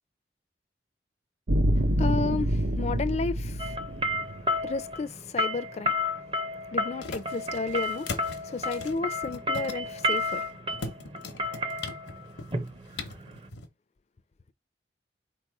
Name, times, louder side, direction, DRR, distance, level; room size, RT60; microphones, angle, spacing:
sound 1, 1.5-4.7, right 1 dB, 85° right, 0.7 m, -27 dB
voice 1, 1.7-3.8 4.6-6.0 6.7-8.1 8.4-10.5 10.8-10.9, left 3 dB, 40° left, 0.4 m, -32 dB
More china bowl, 3.6-13.5, left 1 dB, 30° right, 0.6 m, -31 dB
sound 2, 5.8-13.7, left 3 dB, 85° left, 0.8 m, -42 dB
3.9 x 3.0 x 4.6 m
head